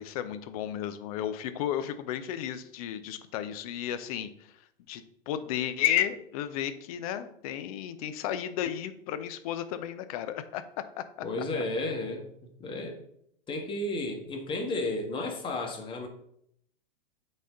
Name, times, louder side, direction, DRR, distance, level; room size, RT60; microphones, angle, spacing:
voice 1, 0.0-4.5 4.9-10.6 11.0-11.1, left 10 dB, 40° left, 0.7 m, -33 dB
voice 2, 11.2-12.3 12.6-13.0 13.5-16.1, left 2 dB, 15° left, 1.3 m, -32 dB
8.3 x 4.2 x 3.9 m
figure-of-eight pair, 105°, 30 cm